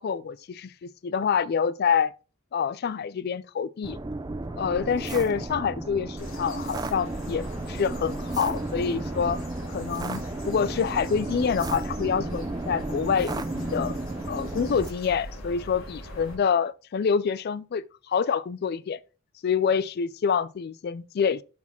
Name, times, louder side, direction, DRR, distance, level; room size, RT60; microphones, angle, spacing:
voice 1, 0.0-2.1 2.5-4.0 4.6-9.4 9.7-14.0 14.3-19.0 19.4-21.4, left 6 dB, 50° left, 0.3 m, -27 dB
sound 1, 3.8-14.9, right 2 dB, 20° right, 0.4 m, -33 dB
sound 2, 6.2-16.3, equal, 80° left, 2.2 m, -41 dB
5.9 x 4.2 x 4.3 m
head